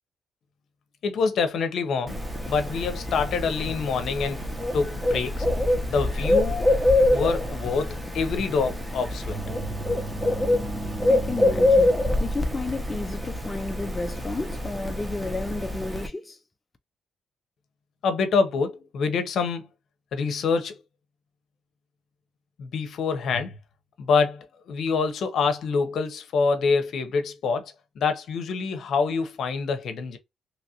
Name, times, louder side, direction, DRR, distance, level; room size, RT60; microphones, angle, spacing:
voice 1, 1.0-2.2 2.5-5.5 5.9-6.7 7.1-9.4 18.0-19.7 20.1-20.7 22.6-23.6 24.0-30.2, left 5 dB, 65° left, 0.7 m, -26 dB
Bird, 2.1-16.1, left 1 dB, 10° right, 0.8 m, -25 dB
voice 2, 11.1-11.9 12.2-16.4, left 3 dB, 20° left, 0.4 m, -32 dB
3.0 x 2.4 x 2.8 m
cardioid pair, 90°, 0 cm